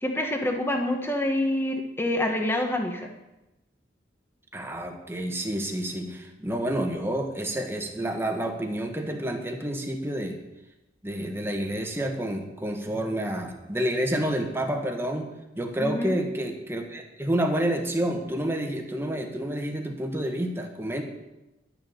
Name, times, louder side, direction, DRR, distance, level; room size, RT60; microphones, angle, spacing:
voice 1, 0.0-3.1 15.8-16.2, left 1 dB, 15° left, 3 dB, 1.3 m, -27 dB
voice 2, 4.5-10.4 11.0-15.3 15.6-21.0, right 1 dB, 15° right, 3 dB, 1.4 m, -29 dB
11.5 x 6.8 x 7.1 m, 0.97 s
head